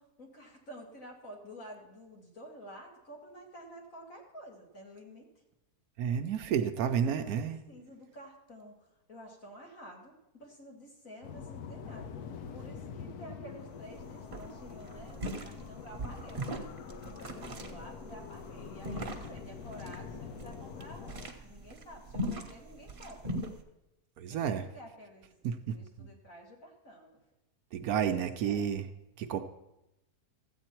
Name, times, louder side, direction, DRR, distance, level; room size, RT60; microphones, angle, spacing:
voice 1, 0.0-5.3 6.5-6.6 6.9-16.7 17.0-21.2 21.4-23.4 24.3-25.3 25.6-27.2 28.1-28.8, equal, 55° left, 0 dB, 2.3 m, -51 dB
voice 2, 6.0-7.6 24.2-24.6 25.4-26.1 27.7-28.8 29.2-29.4, right 8 dB, 70° right, 8 dB, 1.1 m, -31 dB
sound 1, 11.2-21.3, left 6 dB, 70° left, 1.2 m, -45 dB
sound 2, 13.5-13.6 13.9-14.0 14.3-23.6, equal, 40° right, 1.1 m, -40 dB
14.0 x 8.4 x 4.4 m, 0.91 s
omnidirectional pair, 1.7 m